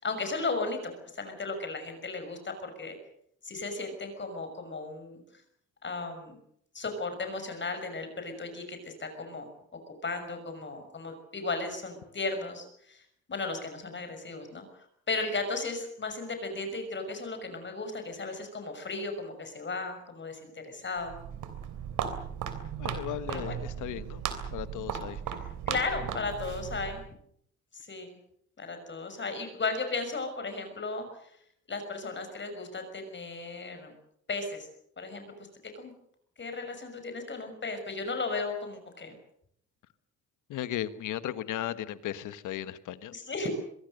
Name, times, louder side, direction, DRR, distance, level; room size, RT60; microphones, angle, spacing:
voice 1, 0.0-3.0 3.4-5.4 5.8-6.4 6.7-9.5 9.9-13.0 13.3-14.6 15.1-21.1 23.3-23.6 25.7-27.0 27.7-28.2 28.6-31.1 31.7-33.9 34.3-34.7 35.0-35.3 35.7-35.9 36.4-39.2 43.1-43.5, left 3 dB, 40° left, 7 dB, 6.2 m, -35 dB
Walk footsteps, 21.0-27.1, right 8 dB, 80° right, 3.2 m, -36 dB
voice 2, 22.8-24.2 24.5-25.2 40.5-43.1, left 12 dB, 85° left, 13 dB, 1.5 m, -36 dB
24.5 x 22.0 x 6.6 m, 0.71 s
cardioid pair, 90°, 30 cm